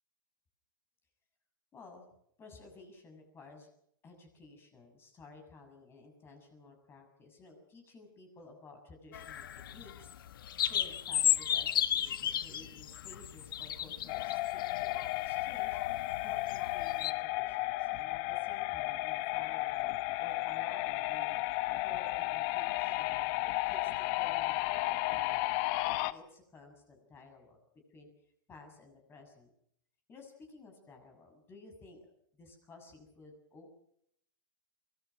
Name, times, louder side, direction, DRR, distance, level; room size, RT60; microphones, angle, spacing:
voice 1, 1.7-2.1 2.4-3.7 4.0-9.4 9.7-19.9 20.2-21.4 21.8-23.4 23.7-27.6 27.9-29.5 30.1-33.8, left 3 dB, 20° left, 4 dB, 6.9 m, -55 dB
sound 1, 9.1-17.1, left 10 dB, 75° left, 1.5 m, -34 dB
sound 2, 14.1-26.1, left 19 dB, 40° left, 1.2 m, -33 dB
24.0 x 20.0 x 6.4 m, 0.71 s
hypercardioid pair, 140°, 12 cm